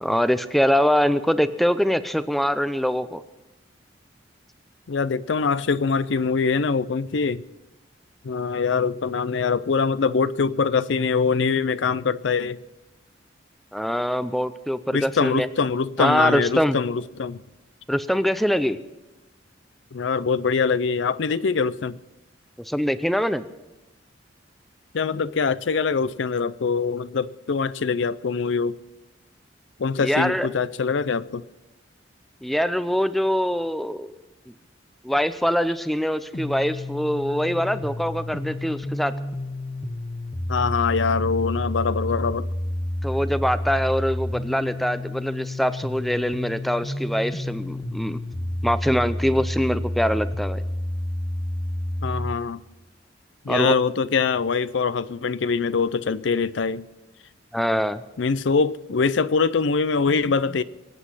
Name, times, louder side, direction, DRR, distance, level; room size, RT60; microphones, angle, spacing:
voice 1, 0.0-3.2 13.7-15.5 16.0-16.8 17.9-18.8 22.7-23.4 30.0-30.5 32.4-34.1 35.0-39.1 43.0-48.2 48.6-50.6 53.5-53.7 57.5-58.0, equal, ahead, 0.5 m, -23 dB
voice 2, 4.9-7.4 8.2-12.6 14.9-17.4 19.9-22.0 24.9-28.8 29.8-31.4 40.5-42.5 52.0-52.6 53.4-56.8 58.2-60.6, left 5 dB, 70° left, 0.5 m, -23 dB
sound 1, 36.3-52.3, left 1 dB, 30° left, 0.8 m, -30 dB
24.5 x 8.2 x 5.6 m
head